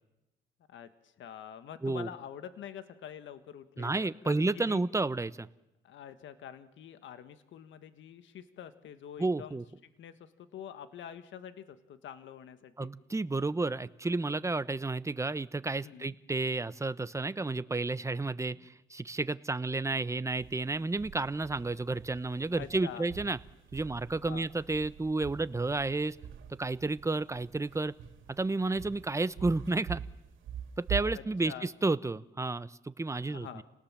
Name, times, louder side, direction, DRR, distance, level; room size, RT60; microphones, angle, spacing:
voice 1, 0.7-4.8 5.8-12.9 15.8-16.1 18.2-18.6 22.5-23.1 24.3-24.5 31.1-31.7 33.2-33.6, left 9 dB, 75° left, 11 dB, 1.5 m, -46 dB
voice 2, 3.8-5.5 9.2-9.6 12.8-23.4 23.7-26.2 26.6-27.9 28.4-30.0 30.8-33.5, right 3 dB, 15° right, 15 dB, 0.9 m, -31 dB
sound 1, 20.3-31.2, right 8 dB, 80° right, 2.9 m, -45 dB
30.0 x 19.0 x 7.4 m, 0.94 s
cardioid pair, 90°, 20 cm